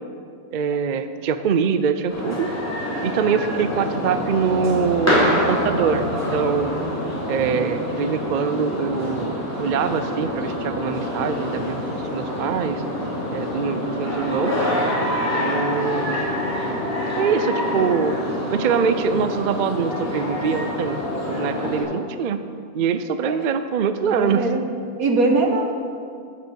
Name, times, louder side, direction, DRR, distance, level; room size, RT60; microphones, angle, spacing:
voice 1, 0.5-2.5 3.0-6.8 7.3-12.8 13.3-14.5 15.3-16.2 17.2-18.1 18.5-21.0 21.3-22.4 22.7-24.5, right 6 dB, 90° right, 10 dB, 0.4 m, -23 dB
sound 1, 2.1-21.8, left 1 dB, 10° left, 3.1 m, -26 dB
voice 2, 24.1-24.6 25.0-25.7, right 2 dB, 70° right, 3 dB, 1.6 m, -22 dB
11.5 x 6.8 x 7.0 m, 2.3 s
omnidirectional pair, 1.6 m